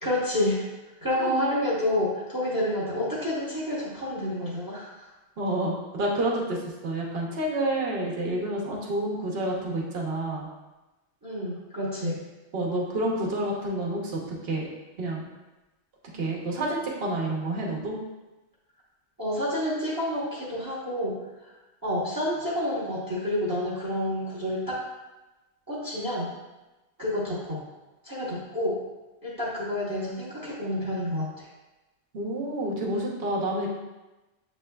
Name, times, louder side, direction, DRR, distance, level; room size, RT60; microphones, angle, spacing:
voice 1, 0.0-0.7 1.0-5.1 11.2-12.2 19.2-21.5 21.8-24.9 25.7-26.3 27.0-27.6 28.0-28.8 29.2-31.5, left 1 dB, 20° right, -7 dB, 0.8 m, -29 dB
voice 2, 5.4-10.5 12.5-14.7 15.0-15.2 16.1-18.0 32.1-33.7, right 1 dB, 60° right, -1 dB, 1.1 m, -29 dB
7.3 x 3.1 x 2.2 m, 1.1 s
omnidirectional pair, 1.2 m